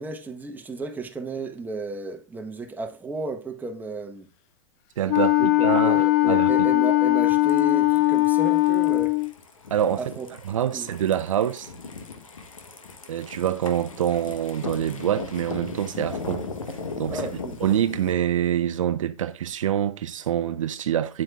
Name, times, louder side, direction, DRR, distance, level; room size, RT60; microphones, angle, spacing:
voice 1, 0.0-4.3 5.2-9.2 10.0-10.3 10.7-10.9 17.1-17.6, right 3 dB, 10° right, 1.0 m, -33 dB
voice 2, 5.0-6.7 9.7-10.1 10.4-11.7 13.1-16.5 17.0-21.2, right 10 dB, 75° right, 0.6 m, -26 dB
Wind instrument woodwind instrument, 5.1-9.3, left 21 dB, 40° left, 0.4 m, -20 dB
sound 1, 7.3-18.1, left 4 dB, 85° left, 1.0 m, -38 dB
8.7 x 7.6 x 2.3 m
hypercardioid pair, 100°, 17 cm